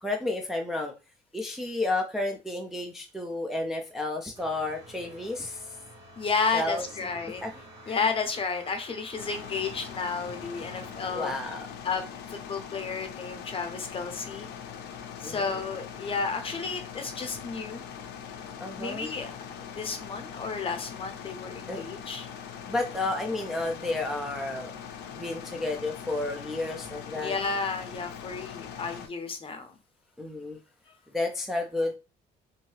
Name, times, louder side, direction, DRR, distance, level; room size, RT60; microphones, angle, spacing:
voice 1, 0.0-0.9 1.3-5.8 6.5-6.8 7.2-7.5 7.9-8.0 11.1-11.6 15.2-15.6 18.6-19.1 21.7-21.8 22.7-24.7 25.1-27.3 30.2-30.6 31.1-32.0, left 2 dB, ahead, 1 dB, 0.4 m, -31 dB
sound 1, 4.3-11.1, right 1 dB, 70° right, 1.5 m, -49 dB
voice 2, 6.2-7.4 7.9-11.4 11.8-12.0 12.3-14.5 15.2-17.8 18.8-19.3 19.7-22.3 27.1-29.8, left 5 dB, 30° left, 7 dB, 0.7 m, -32 dB
sound 2, 9.2-29.1, left 8 dB, 80° left, 0.5 m, -42 dB
2.7 x 2.7 x 3.1 m, 0.31 s
cardioid pair, 110°, 17 cm